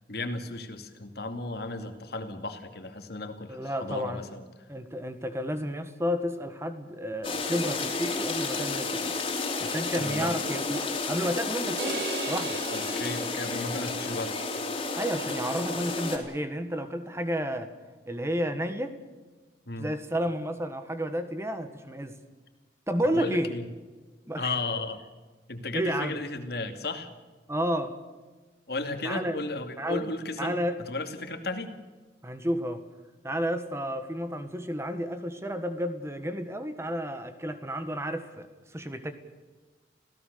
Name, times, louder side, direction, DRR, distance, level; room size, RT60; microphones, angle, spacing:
voice 1, 0.1-4.4 10.0-10.4 12.7-14.4 19.7-19.9 23.1-23.7 24.4-25.0 25.5-27.1 28.7-31.7, left 2 dB, 60° left, 6 dB, 2.5 m, -34 dB
voice 2, 3.5-4.2 4.7-9.1 9.6-12.6 15.0-17.7 18.1-18.9 19.8-22.1 22.9-23.5 24.3-24.5 25.7-26.2 27.5-27.9 29.0-29.4 29.8-30.0 30.4-30.8 32.2-32.8 33.2-39.1, equal, 15° right, 9 dB, 1.5 m, -31 dB
sound 1, 7.2-16.2, left 3 dB, 30° left, 3.6 m, -31 dB
sound 2, 11.8-14.1, right 4 dB, 65° right, 3.0 m, -37 dB
27.5 x 17.0 x 6.8 m, 1.3 s
head